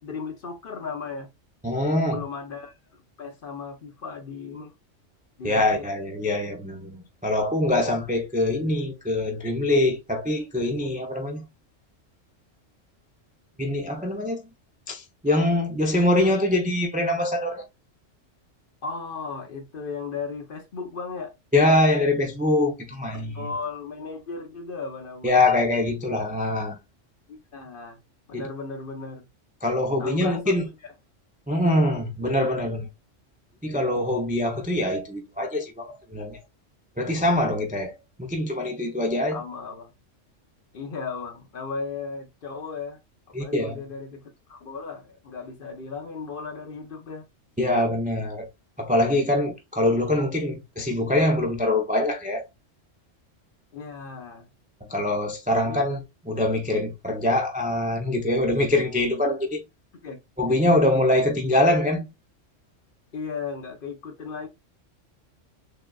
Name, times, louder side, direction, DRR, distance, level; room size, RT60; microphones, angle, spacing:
voice 1, 0.0-1.3 2.0-4.7 5.4-5.9 18.8-21.3 23.1-25.5 27.3-28.0 28.3-29.2 30.0-30.9 39.3-39.9 40.7-43.0 43.3-44.2 44.5-47.3 53.7-54.5 55.6-55.9 60.0-60.2 63.1-64.5, left 5 dB, 50° left, 0.9 m, -36 dB
voice 2, 1.6-2.2 5.4-11.4 13.6-14.4 14.9-17.6 21.5-23.5 25.2-26.8 28.3-28.5 29.6-30.6 31.5-32.9 33.6-36.4 37.0-37.9 38.2-39.4 43.3-43.8 47.6-48.5 48.8-52.4 54.9-59.6 60.4-62.1, left 1 dB, 15° right, 0.3 m, -24 dB
6.4 x 2.4 x 2.3 m
omnidirectional pair, 1.3 m